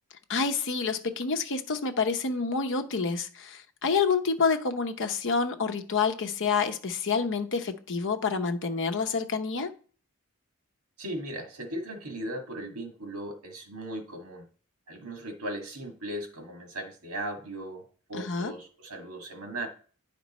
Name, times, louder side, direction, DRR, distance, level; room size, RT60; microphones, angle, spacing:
voice 1, 0.3-9.7 18.1-18.5, left 5 dB, 60° left, 0.8 m, -28 dB
voice 2, 11.0-14.4 14.9-19.7, right 1 dB, 90° right, 1.9 m, -37 dB
10.0 x 5.2 x 4.1 m
head